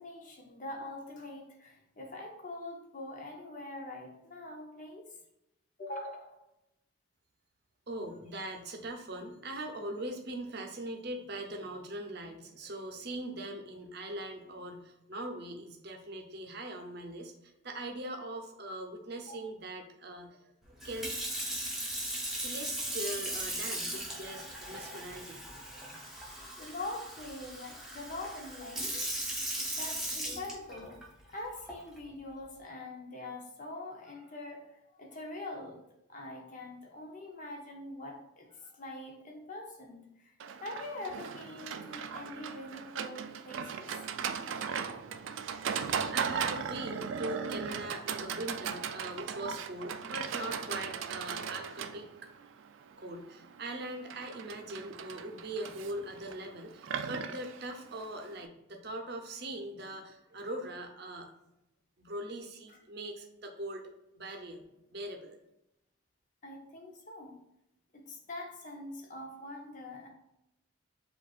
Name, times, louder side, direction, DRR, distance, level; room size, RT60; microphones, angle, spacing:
voice 1, 0.0-5.2 5.8-6.4 19.3-19.4 26.6-29.0 29.7-31.0 31.3-40.3 40.6-44.1 48.6-48.7 62.7-62.8 66.4-67.4 67.9-70.1, left 2 dB, 40° left, 1 dB, 0.7 m, -44 dB
voice 2, 7.9-20.4 20.7-21.4 22.2-25.4 46.1-52.1 53.0-61.3 62.0-63.9 64.2-64.6 64.9-65.4, right 1 dB, 50° right, 3 dB, 0.7 m, -41 dB
Sink (filling or washing) / Fill (with liquid), 20.8-31.0 31.7-32.0, right 1 dB, ahead, 0.8 m, -38 dB
Livestock farm animals working animals, 40.4-58.4, right 7 dB, 70° right, 0.3 m, -38 dB
7.5 x 2.5 x 2.4 m, 0.87 s
head